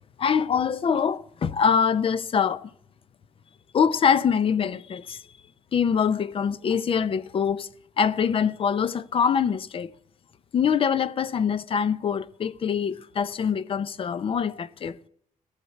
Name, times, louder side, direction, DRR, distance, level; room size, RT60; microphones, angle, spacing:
voice 1, 0.2-2.7 3.7-5.2 5.7-7.7 8.0-9.9 10.5-15.0, left 7 dB, 40° left, 0.5 m, -24 dB
14.5 x 6.6 x 8.3 m
wide cardioid pair, 170°, 14 cm